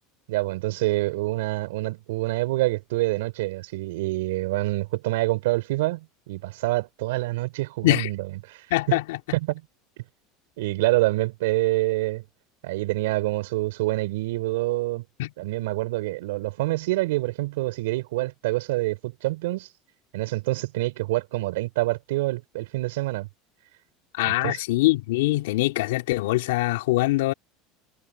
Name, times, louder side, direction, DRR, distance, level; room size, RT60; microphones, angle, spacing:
voice 1, 0.3-9.0 9.3-9.6 10.6-12.2 12.6-15.1 15.4-19.7 20.1-23.3 24.2-24.6, right 19 dB, 80° right, 4.4 m, -26 dB
voice 2, 8.7-9.2 15.2-15.3 24.2-27.3, left 18 dB, 85° left, 3.2 m, -23 dB
supercardioid pair, 110°, 0 cm